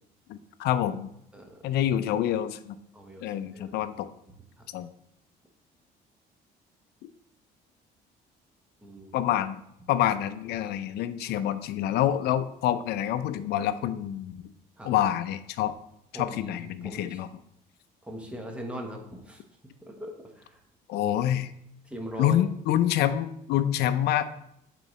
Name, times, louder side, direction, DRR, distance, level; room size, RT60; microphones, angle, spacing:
voice 1, 0.3-1.1 1.6-2.8 3.2-4.1 4.7-4.9 9.1-9.6 9.9-14.5 14.8-15.7 16.1-17.3 20.9-21.5 22.2-24.3, left 11 dB, 75° left, 12 dB, 0.4 m, -27 dB
voice 2, 1.3-1.6 2.9-3.8 4.6-4.7 8.8-9.2 11.2-11.4 14.8-14.9 16.1-17.2 18.0-20.6 21.8-22.4, equal, 5° right, 2 dB, 1.1 m, -41 dB
8.0 x 3.8 x 3.1 m, 0.74 s
cardioid pair, 110°, 17 cm